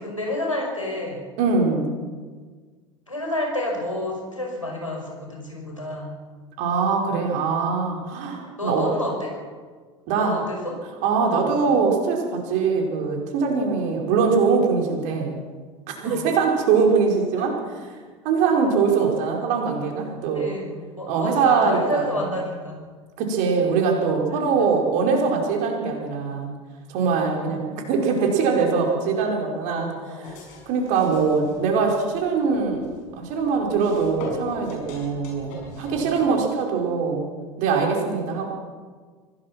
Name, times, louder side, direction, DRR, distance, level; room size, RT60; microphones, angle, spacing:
voice 1, 0.0-1.2 3.1-6.1 8.6-9.4 10.2-10.8 11.2-11.5 16.0-16.3 20.3-22.8 27.2-27.6 29.7-30.4 35.9-36.1, left 1 dB, 85° left, 0 dB, 5.6 m, -30 dB
voice 2, 1.4-1.9 6.6-8.9 10.1-10.4 11.0-15.4 15.9-17.9 18.2-20.5 21.1-22.2 23.2-26.5 26.9-29.9 30.2-30.4 30.7-32.9 33.2-37.3 37.6-38.5, right 5 dB, 50° right, 1 dB, 5.0 m, -22 dB
sound 1, 30.2-36.3, left 4 dB, 50° left, 6.8 m, -43 dB
25.0 x 17.5 x 6.1 m, 1.5 s
figure-of-eight pair, 75°, 16 cm